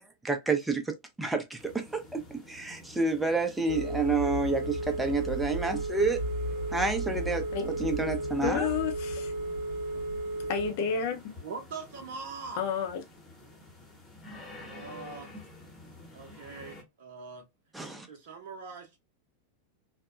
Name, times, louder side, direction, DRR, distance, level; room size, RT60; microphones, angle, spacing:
voice 1, 0.2-6.2 6.7-7.5 7.8-8.7 17.7-18.1, right 3 dB, 5° right, 0.6 m, -29 dB
sound 1, 1.6-16.8, left 2 dB, 15° left, 1.0 m, -51 dB
Telephone, 3.7-10.7, right 1 dB, 85° left, 0.9 m, -33 dB
voice 2, 8.4-9.3 10.5-11.2 12.6-13.0, left 7 dB, 50° left, 0.6 m, -30 dB
voice 3, 11.4-12.6 13.5-13.6 14.6-15.3 16.1-17.4 18.1-19.0, right 4 dB, 50° right, 0.7 m, -42 dB
2.7 x 2.1 x 2.3 m
figure-of-eight pair, 90°, 0 cm